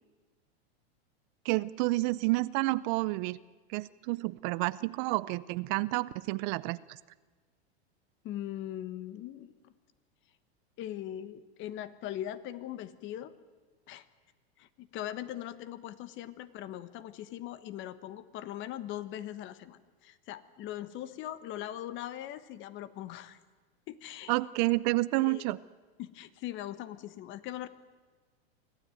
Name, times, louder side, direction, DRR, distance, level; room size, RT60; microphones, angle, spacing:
voice 1, 1.4-3.4 3.7-7.0 24.3-25.6, right 21 dB, 45° right, 18 dB, 0.6 m, -30 dB
voice 2, 8.2-9.7 10.8-13.3 13.9-14.0 14.6-23.4 23.9-24.3 25.2-25.5 26.0-27.7, left 12 dB, 35° left, 15 dB, 1.3 m, -40 dB
24.5 x 15.5 x 9.2 m, 1.4 s
supercardioid pair, 135°, 32 cm